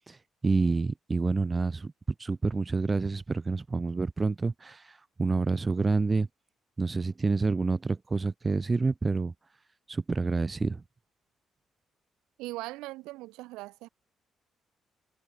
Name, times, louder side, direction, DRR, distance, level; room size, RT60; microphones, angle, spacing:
voice 1, 0.4-1.9 2.2-6.3 6.8-9.3 9.9-10.8, right 3 dB, 30° right, 2.5 m, -28 dB
voice 2, 12.4-13.9, right 19 dB, 85° right, 7.3 m, -40 dB
supercardioid pair, 60°, 0 cm